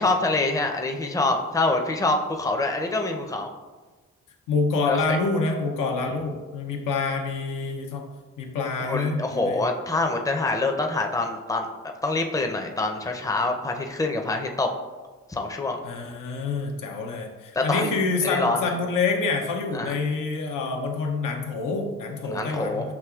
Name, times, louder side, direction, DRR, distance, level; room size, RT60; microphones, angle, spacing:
voice 1, 0.0-3.5 4.9-5.0 8.8-11.7 12.0-14.7 15.3-15.8 17.5-18.0 18.2-18.7 19.7-19.9 22.2-22.9, left 2 dB, 10° left, 3 dB, 0.5 m, -25 dB
voice 2, 4.5-8.0 8.4-9.7 15.8-22.9, left 4 dB, 90° left, 2 dB, 0.6 m, -27 dB
5.9 x 2.9 x 2.3 m, 1.3 s
supercardioid pair, 50°, 31 cm